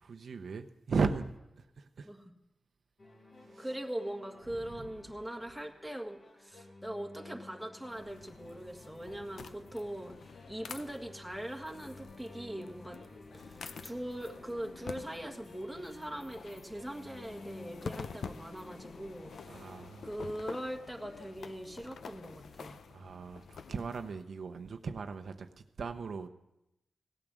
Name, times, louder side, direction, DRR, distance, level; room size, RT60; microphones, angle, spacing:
voice 1, 0.0-1.3 1.8-2.1 3.5-3.7 19.5-20.1 22.9-25.5 25.8-26.3, right 4 dB, 65° right, 0.8 m, -36 dB
sound 1, 3.0-19.9, left 2 dB, 50° left, 2.1 m, -55 dB
voice 2, 3.6-13.0 13.3-13.6 13.8-19.7 20.0-22.8, right 1 dB, ahead, 1.7 m, -41 dB
sound 2, 7.9-24.2, left 5 dB, 80° left, 0.7 m, -48 dB
17.0 x 8.8 x 6.2 m
wide cardioid pair, 90°, 0 cm